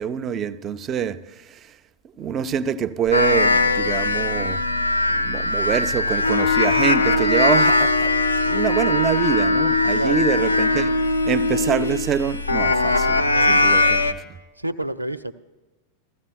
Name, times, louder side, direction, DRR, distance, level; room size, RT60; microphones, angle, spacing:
voice 1, 0.0-1.8 2.2-4.8 5.1-10.9 11.2-14.0, right 8 dB, 30° right, 0.4 m, -25 dB
sound 1, 3.1-14.1, left 2 dB, 80° left, 0.4 m, -21 dB
Wind instrument woodwind instrument, 6.2-12.1, left 2 dB, 60° left, 0.7 m, -23 dB
voice 2, 9.9-10.3 13.2-14.1 14.6-15.3, right 1 dB, 85° right, 0.4 m, -30 dB
16.0 x 14.5 x 2.3 m
figure-of-eight pair, 90°, 0 cm